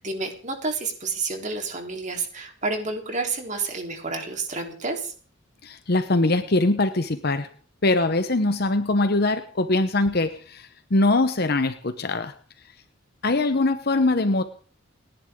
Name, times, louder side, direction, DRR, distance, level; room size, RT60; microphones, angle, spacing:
voice 1, 0.0-5.1, right 3 dB, 40° right, 3 dB, 3.7 m, -30 dB
voice 2, 5.6-7.5 7.8-12.3 13.2-14.4, left 2 dB, 55° left, 10 dB, 1.0 m, -22 dB
29.5 x 11.0 x 3.8 m, 0.43 s
head